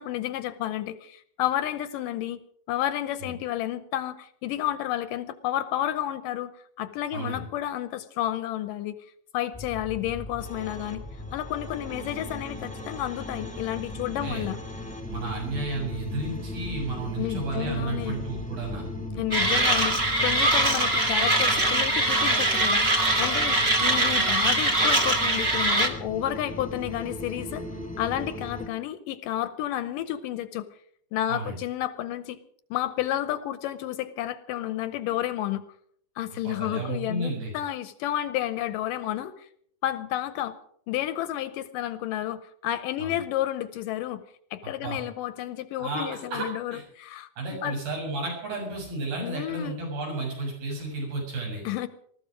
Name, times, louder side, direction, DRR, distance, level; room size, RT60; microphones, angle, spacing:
voice 1, 0.0-2.4 2.7-6.5 6.8-9.0 9.3-11.0 11.3-14.6 17.2-18.2 19.1-27.7 28.0-30.7 31.1-32.4 32.7-35.6 36.2-39.5 39.8-40.6 40.9-44.2 44.5-47.8 49.2-49.8 51.6-51.9, left 13 dB, 75° left, 13 dB, 2.2 m, -31 dB
voice 2, 7.1-7.4 14.2-14.5 15.1-18.8 31.3-31.6 36.5-37.5 43.0-43.2 44.6-45.0 45.8-46.8 47.4-51.6, right 2 dB, 75° right, -1 dB, 8.9 m, -32 dB
sound 1, 9.5-28.7, left 2 dB, 5° left, 1.3 m, -37 dB
Mechanisms, 19.3-25.9, right 2 dB, 40° right, 0.8 m, -22 dB
19.5 x 14.0 x 5.0 m, 0.63 s
omnidirectional pair, 4.2 m